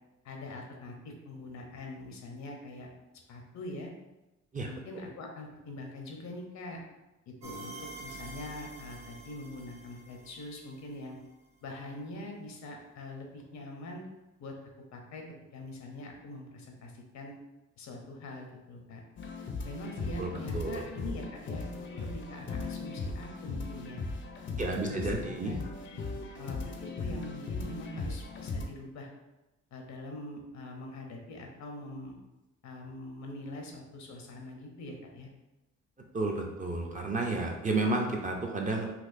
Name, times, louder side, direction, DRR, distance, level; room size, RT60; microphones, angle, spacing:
voice 1, 0.2-2.9 3.3-3.9 4.7-6.8 7.3-11.2 11.6-14.1 14.4-14.6 14.9-17.3 17.8-19.0 19.6-24.0 24.4-25.6 26.4-29.1 29.7-32.2 32.6-35.3, left 2 dB, 65° left, 2 dB, 0.8 m, -43 dB
sound 1, 7.4-11.1, right 2 dB, 65° right, 0.9 m, -47 dB
sound 2, 19.2-28.6, left 3 dB, 40° left, 0.6 m, -38 dB
voice 2, 20.2-20.9 24.6-25.6 36.1-38.9, right 2 dB, 25° right, 1 dB, 0.5 m, -31 dB
4.1 x 2.4 x 2.5 m, 1.0 s
cardioid pair, 90°, 30 cm